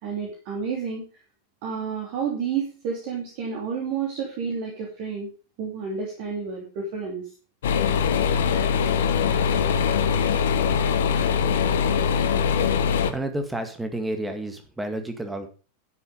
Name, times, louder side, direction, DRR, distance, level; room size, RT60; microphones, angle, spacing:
voice 1, 0.0-1.0 1.6-5.3 5.6-7.3, right 6 dB, 45° right, -1 dB, 3.0 m, -30 dB
sound 1, 7.6-13.1, left 6 dB, 60° left, 1.0 m, -22 dB
voice 2, 13.1-15.5, right 1 dB, 5° right, 6 dB, 1.9 m, -30 dB
11.5 x 6.9 x 5.3 m, 0.37 s
figure-of-eight pair, 90°, 0 cm